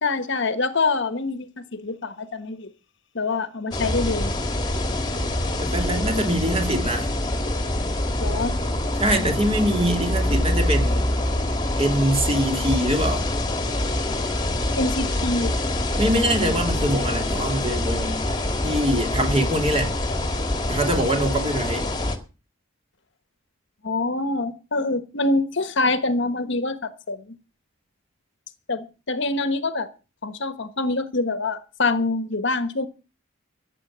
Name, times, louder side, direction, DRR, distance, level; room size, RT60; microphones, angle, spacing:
voice 1, 0.0-2.7 3.1-4.3 8.2-8.5 14.8-15.5 23.8-27.2 28.7-29.9 30.2-32.9, left 3 dB, 60° left, 1.2 m, -25 dB
sound 1, 3.7-22.2, left 1 dB, 20° left, 1.8 m, -25 dB
voice 2, 5.6-7.1 8.9-11.1 11.8-13.3 16.0-18.3 18.6-19.9 20.7-21.9, right 1 dB, 30° right, 2.7 m, -23 dB
14.0 x 7.8 x 7.4 m
head